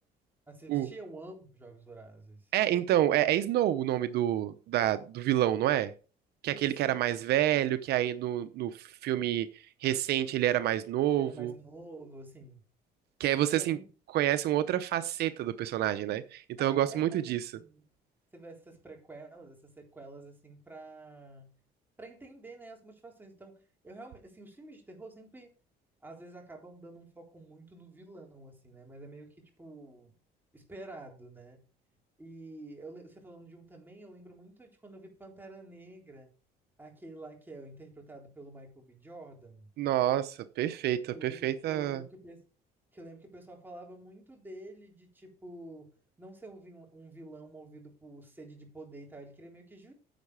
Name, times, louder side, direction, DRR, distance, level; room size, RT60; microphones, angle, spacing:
voice 1, 0.5-2.5 5.5-5.7 6.5-7.0 11.1-12.6 13.5-13.9 16.6-17.9 18.3-21.6 22.0-25.5 26.0-30.1 30.5-31.6 32.2-36.3 36.8-39.7 41.1-42.4 42.9-45.9 46.2-49.9, right 2 dB, 10° right, 3.8 m, -49 dB
voice 2, 2.5-5.9 6.4-11.5 13.2-13.8 14.1-17.5 39.8-42.0, right 12 dB, 75° right, 0.7 m, -28 dB
10.5 x 7.4 x 4.8 m
cardioid pair, 110°, 17 cm